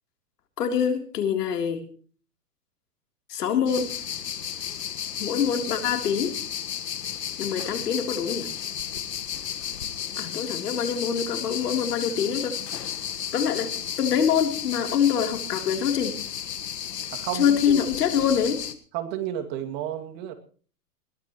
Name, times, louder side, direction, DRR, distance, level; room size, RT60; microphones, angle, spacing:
voice 1, 0.6-1.9 3.3-3.9 5.2-6.3 7.4-8.5 10.2-12.6 13.3-16.1 17.3-18.6, left 8 dB, 75° left, 4 dB, 3.5 m, -25 dB
sound 1, 3.7-18.7, left 9 dB, 90° left, 1.6 m, -33 dB
voice 2, 17.1-17.8 18.9-20.3, right 11 dB, 40° right, 6 dB, 2.5 m, -31 dB
21.5 x 18.0 x 3.1 m, 0.42 s
hypercardioid pair, 130°, 48 cm